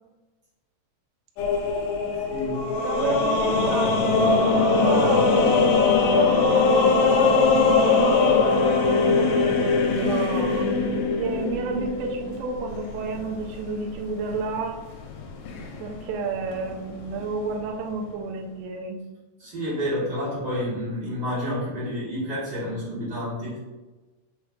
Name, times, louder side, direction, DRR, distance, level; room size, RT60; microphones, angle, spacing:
sound 1, 1.4-17.6, left 4 dB, 85° left, 2.3 m, -22 dB
voice 1, 2.1-2.7 3.0-3.1 19.4-23.6, equal, 45° right, -10 dB, 1.5 m, -29 dB
voice 2, 2.8-10.7 11.2-14.8 15.8-19.1, right 4 dB, 80° right, 2 dB, 1.9 m, -30 dB
5.8 x 3.1 x 2.3 m, 1.2 s
omnidirectional pair, 3.8 m